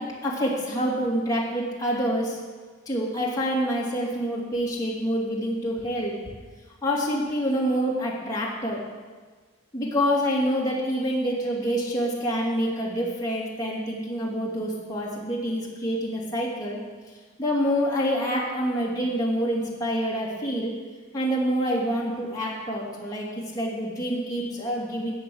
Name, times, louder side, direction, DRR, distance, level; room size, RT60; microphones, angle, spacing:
voice 1, 0.0-2.4 2.9-6.1 6.8-8.8 9.7-16.8 17.4-20.7 21.1-25.1, equal, 15° left, -5 dB, 2.8 m, -27 dB
13.5 x 5.3 x 9.4 m, 1.4 s
head